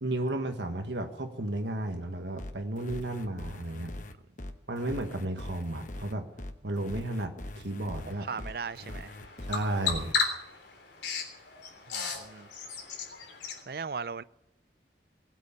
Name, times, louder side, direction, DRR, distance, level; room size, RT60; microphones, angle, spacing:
voice 1, 0.0-3.9 4.7-6.3 6.6-8.2 9.5-10.2, right 1 dB, 80° right, 1.4 m, -33 dB
Electro Síncopa media, 2.4-10.1, left 1 dB, 45° left, 1.0 m, -42 dB
Bird vocalization bird call bird song, 8.0-13.6, left 5 dB, 75° left, 3.5 m, -35 dB
voice 2, 8.2-9.1 11.9-12.5 13.7-14.2, right 5 dB, 55° right, 0.5 m, -38 dB
20.0 x 8.2 x 8.3 m
head